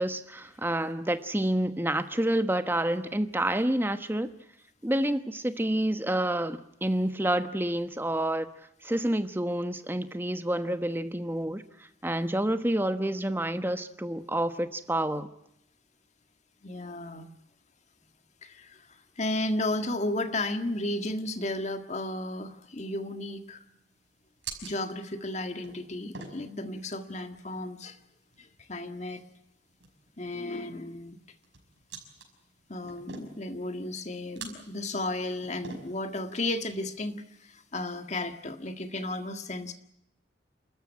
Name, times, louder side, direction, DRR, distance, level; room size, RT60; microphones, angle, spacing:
voice 1, 0.0-4.3 4.8-8.5 8.8-11.6 12.0-15.3, right 1 dB, 10° right, 1.1 m, -28 dB
voice 2, 16.6-17.3 18.4-18.9 19.2-23.6 24.6-28.0 28.4-29.2 30.2-31.2 32.7-39.7, left 2 dB, 40° left, 1.8 m, -34 dB
sound 1, 22.5-37.8, right 5 dB, 70° right, 5.8 m, -49 dB
28.5 x 14.0 x 10.0 m
head